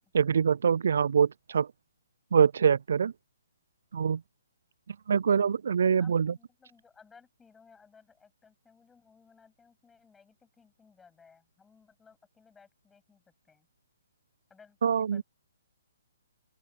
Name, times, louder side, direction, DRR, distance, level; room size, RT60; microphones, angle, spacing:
voice 1, 0.1-1.7 2.3-3.1 3.9-4.2 5.1-6.3 14.8-15.2, right 7 dB, 65° right, 0.3 m, -24 dB
voice 2, 5.8-13.7 14.5-15.2, left 5 dB, 10° left, 8.0 m, -60 dB
open air
hypercardioid pair, 140°, 0 cm